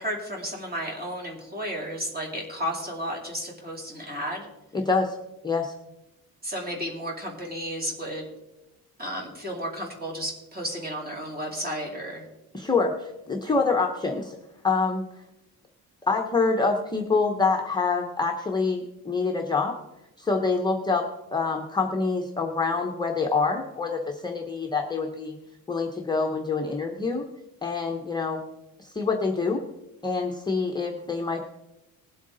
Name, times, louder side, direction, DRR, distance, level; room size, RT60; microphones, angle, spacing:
voice 1, 0.0-4.5 6.4-8.3 9.0-12.2, equal, 25° right, 0 dB, 2.8 m, -33 dB
voice 2, 4.7-5.2 5.4-5.7 12.5-14.4 14.6-15.0 16.1-19.7 20.2-21.0 21.3-25.4 25.7-27.2 27.6-28.4 28.8-29.6 30.0-31.4, left 4 dB, 10° left, 2 dB, 0.7 m, -26 dB
19.0 x 7.9 x 3.8 m, 0.93 s
wide cardioid pair, 180°, 37 cm